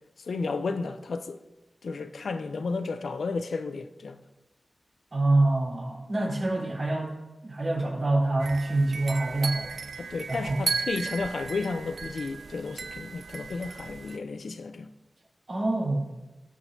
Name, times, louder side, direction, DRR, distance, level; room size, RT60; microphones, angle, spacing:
voice 1, 0.2-1.4 1.8-4.2 10.0-14.9, left 4 dB, 85° left, 0.5 m, -33 dB
voice 2, 5.1-7.1 7.4-9.7 10.3-10.6 15.5-16.0, right 2 dB, 55° right, 3.6 m, -26 dB
sound 1, 8.4-14.2, right 4 dB, 75° right, 0.3 m, -35 dB
18.0 x 6.2 x 2.7 m
wide cardioid pair, 100°, 0 cm